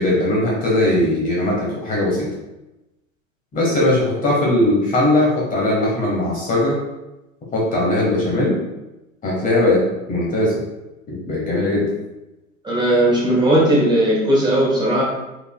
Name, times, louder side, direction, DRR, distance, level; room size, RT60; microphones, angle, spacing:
voice 1, 0.0-2.3 3.5-6.8 7.5-8.6 9.2-9.8 10.1-10.6 11.1-11.8, left 1 dB, 20° left, -4 dB, 1.1 m, -19 dB
voice 2, 12.6-15.0, right 1 dB, 10° right, -5 dB, 1.4 m, -17 dB
5.3 x 4.2 x 2.2 m, 0.99 s
figure-of-eight pair, 95°, 40 cm